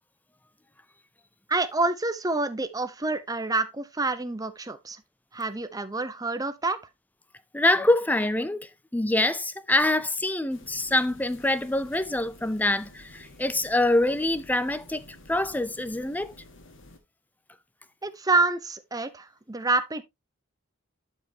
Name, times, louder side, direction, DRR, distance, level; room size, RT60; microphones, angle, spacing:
voice 1, 1.5-5.0 5.3-6.8 18.0-20.0, right 3 dB, 20° right, 0.8 m, -27 dB
voice 2, 7.5-16.3, left 1 dB, 10° left, 0.5 m, -25 dB
sound 1, 10.5-17.0, left 1 dB, 65° left, 2.1 m, -51 dB
12.0 x 5.5 x 2.8 m
head